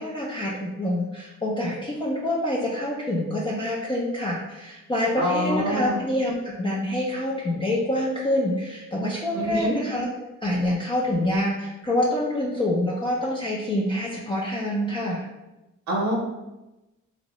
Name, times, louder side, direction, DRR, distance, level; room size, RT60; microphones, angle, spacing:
voice 1, 0.0-10.1 10.4-15.3, left 1 dB, 15° left, -5 dB, 0.4 m, -26 dB
voice 2, 5.2-6.0 9.3-9.8 15.9-16.1, equal, 65° right, -3 dB, 0.7 m, -25 dB
2.6 x 2.0 x 2.9 m, 1.0 s
cardioid pair, 90°, 30 cm